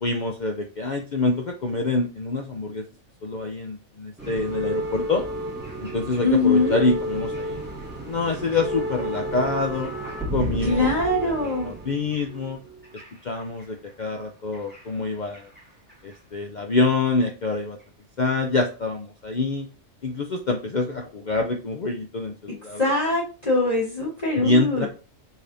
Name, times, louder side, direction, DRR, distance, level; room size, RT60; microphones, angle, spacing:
voice 1, 0.0-2.8 3.2-5.2 5.9-7.6 8.0-9.9 10.3-10.9 11.2-11.3 11.6-12.6 13.2-15.5 16.0-17.8 18.2-19.7 20.0-22.8 24.4-24.9, left 3 dB, 70° left, 3 dB, 0.4 m, -26 dB
sound 1, 4.2-13.6 14.5-15.6 15.9-16.1 17.0-17.1, equal, 10° right, 1.3 m, -32 dB
voice 2, 6.2-6.8 10.7-11.7 22.8-24.9, left 2 dB, 30° left, -5 dB, 1.3 m, -22 dB
5.1 x 3.4 x 2.6 m, 0.35 s
omnidirectional pair, 1.4 m